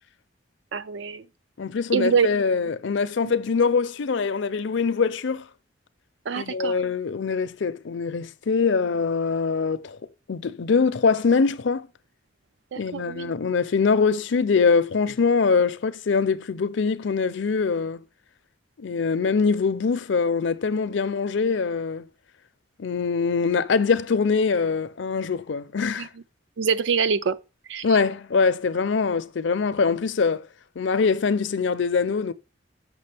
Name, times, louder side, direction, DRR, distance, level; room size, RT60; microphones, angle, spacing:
voice 1, 0.7-1.2 1.9-2.3 3.2-3.3 6.3-6.8 12.7-13.3 26.0-26.1 26.6-27.4 27.7-27.9, right 6 dB, 65° right, 0.4 m, -24 dB
voice 2, 1.6-5.4 6.4-10.0 10.3-11.9 12.8-18.0 18.8-22.0 22.8-26.1 27.8-30.5 30.8-32.3, left 5 dB, 65° left, 0.5 m, -23 dB
6.8 x 6.0 x 3.3 m
head